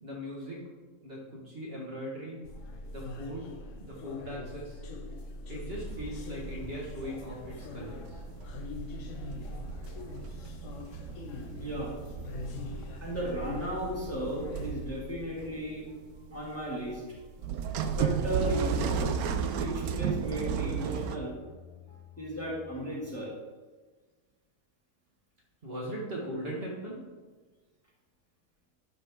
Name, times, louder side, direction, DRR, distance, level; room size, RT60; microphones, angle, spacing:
voice 1, 0.0-0.6 1.0-2.4 2.9-3.5 3.8-4.8 5.5-8.2 25.6-27.0, equal, 40° right, -4 dB, 1.8 m, -39 dB
sound 1, 2.4-14.8, left 2 dB, 65° left, 1.0 m, -42 dB
sound 2, 5.7-21.2, right 7 dB, 80° right, 1.1 m, -35 dB
voice 2, 11.6-11.9 13.0-15.8 16.3-17.0 17.9-19.1 19.5-21.3 22.2-23.3, right 1 dB, 10° left, -5 dB, 1.8 m, -35 dB
sound 3, 15.4-23.3, left 2 dB, 30° left, 2.1 m, -53 dB
12.0 x 5.1 x 3.6 m, 1.4 s
omnidirectional pair, 1.5 m